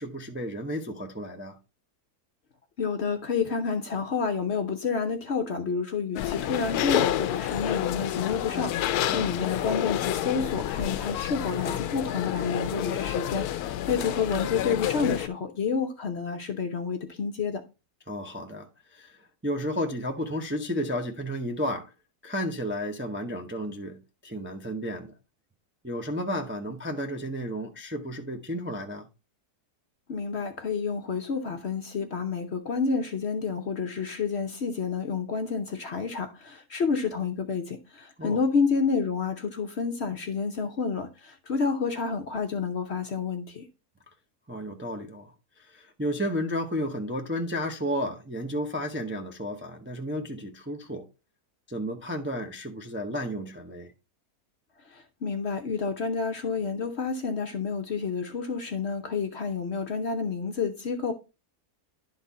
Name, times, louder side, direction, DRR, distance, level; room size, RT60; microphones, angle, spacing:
voice 1, 0.0-1.6 9.1-9.3 18.1-21.9 22.2-25.1 25.8-29.1 38.2-38.4 44.5-51.1 51.7-53.9, equal, 10° right, 0.5 m, -32 dB
voice 2, 2.8-17.6 30.1-43.7 54.9-61.1, left 5 dB, 55° left, 0.8 m, -29 dB
sound 1, 6.2-15.3, left 12 dB, 80° left, 1.1 m, -29 dB
11.0 x 4.0 x 4.1 m
omnidirectional pair, 1.6 m